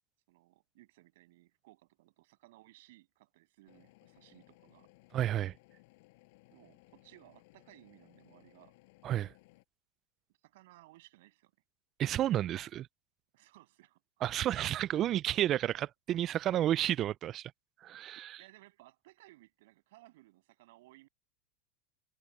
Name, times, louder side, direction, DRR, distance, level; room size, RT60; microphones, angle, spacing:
voice 1, 0.3-4.9 6.5-8.8 10.4-11.5 13.3-14.2 15.7-15.9 18.4-21.1, right 19 dB, 70° right, 7.8 m, -60 dB
sound 1, 3.7-9.6, left 24 dB, 65° left, 5.4 m, -63 dB
voice 2, 5.1-5.5 9.0-9.3 12.0-12.9 14.2-17.5 17.8-18.4, right 12 dB, 35° right, 0.3 m, -31 dB
supercardioid pair, 120°, 0 cm